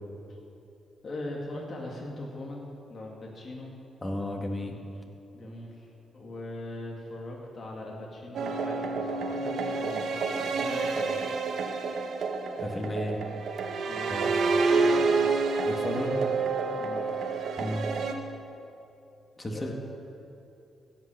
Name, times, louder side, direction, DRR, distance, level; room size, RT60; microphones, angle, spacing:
voice 1, 1.0-3.7 5.3-11.2 13.9-15.3 16.8-17.1 19.5-19.7, left 1 dB, 50° left, -1 dB, 2.2 m, -40 dB
voice 2, 4.0-4.8 12.5-13.2 14.1-14.3 15.6-16.2 17.6-17.9 19.4-19.7, left 1 dB, 30° left, 2 dB, 1.9 m, -33 dB
sound 1, 8.3-18.1, right 4 dB, 70° right, 1.0 m, -28 dB
16.0 x 6.1 x 6.9 m, 2.7 s
supercardioid pair, 65°, 0 cm